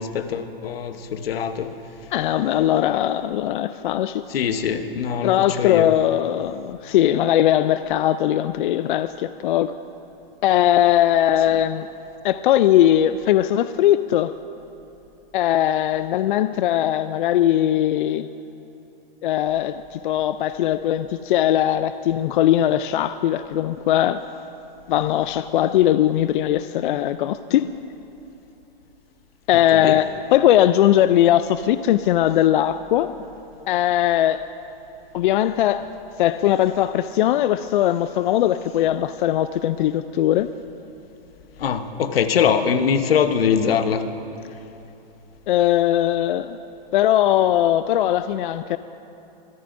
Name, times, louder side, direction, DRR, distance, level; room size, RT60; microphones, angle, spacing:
voice 1, 0.0-1.7 4.3-5.9 29.7-30.0 41.6-44.1, left 7 dB, 85° left, 9 dB, 1.0 m, -22 dB
voice 2, 2.1-4.2 5.2-9.7 10.4-11.9 12.2-14.4 15.3-18.3 19.2-24.2 24.9-27.7 29.5-33.2 33.7-34.4 35.1-35.9 36.2-40.5 45.5-46.6 46.9-48.8, left 12 dB, 60° left, 12 dB, 0.4 m, -20 dB
23.0 x 14.0 x 2.6 m, 2.9 s
hypercardioid pair, 145°, 29 cm